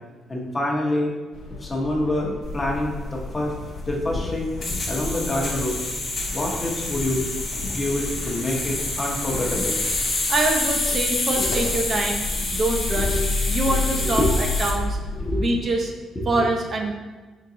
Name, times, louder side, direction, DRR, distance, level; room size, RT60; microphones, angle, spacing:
voice 1, 0.3-1.1 1.6-3.5 3.9-4.5 4.9-5.8 6.3-9.8 11.4-11.5 13.0-13.2 14.1-14.4 15.2-15.5 16.2-16.4, left 1 dB, 25° left, -1 dB, 0.8 m, -26 dB
sound 1, 1.3-15.4, left 3 dB, 80° left, 0.6 m, -32 dB
sound 2, 2.4-14.8, left 2 dB, 55° left, 1.0 m, -28 dB
voice 2, 10.3-15.0 15.4-15.9 16.3-16.9, right 2 dB, 45° right, 1 dB, 0.5 m, -25 dB
3.8 x 3.7 x 2.8 m, 1.3 s
cardioid pair, 90°, 0 cm